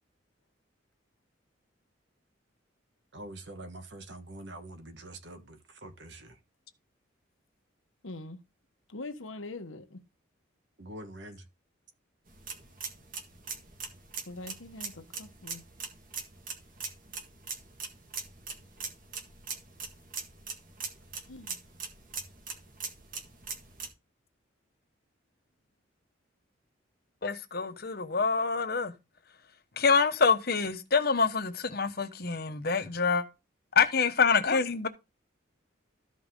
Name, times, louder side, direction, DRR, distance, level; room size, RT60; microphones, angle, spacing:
voice 1, 3.1-6.4 10.8-11.4, right 1 dB, 60° right, 1.4 m, -45 dB
voice 2, 8.0-8.4 8.9-10.0 14.3-15.6 21.3-21.6, left 2 dB, 85° left, 1.1 m, -43 dB
sound 1, 12.3-23.9, right 5 dB, 45° right, 1.8 m, -41 dB
voice 3, 27.2-28.9 29.8-33.2 33.7-34.9, left 5 dB, 50° left, 1.1 m, -26 dB
13.5 x 5.3 x 3.7 m
head